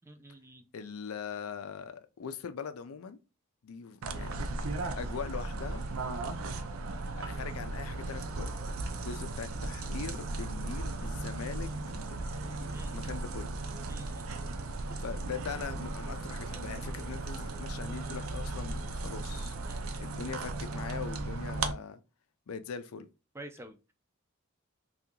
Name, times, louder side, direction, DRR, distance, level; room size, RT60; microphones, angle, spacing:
voice 1, 0.0-0.6 12.7-13.1 13.9-14.4 19.7-19.8 23.3-23.8, right 1 dB, 10° right, 0.3 m, -49 dB
voice 2, 0.7-3.2 3.6-4.4 5.0-5.8 7.2-8.5 8.9-12.2 12.8-13.5 15.0-19.5 20.0-22.0 22.5-23.1, left 6 dB, 90° left, 0.5 m, -41 dB
sound 1, 4.0-21.7, right 2 dB, 80° right, 0.5 m, -36 dB
2.8 x 2.4 x 3.6 m
head